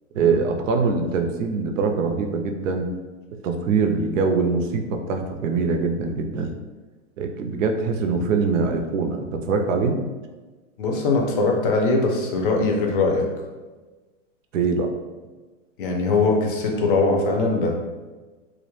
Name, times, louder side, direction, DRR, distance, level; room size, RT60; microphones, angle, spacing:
voice 1, 0.1-2.9 3.4-6.5 7.2-10.0 14.5-14.9, right 4 dB, 85° right, 5 dB, 0.5 m, -23 dB
voice 2, 10.8-13.3 15.8-17.7, left 3 dB, 45° left, 1 dB, 0.5 m, -21 dB
2.3 x 2.0 x 3.0 m, 1.3 s
supercardioid pair, 160°, 37 cm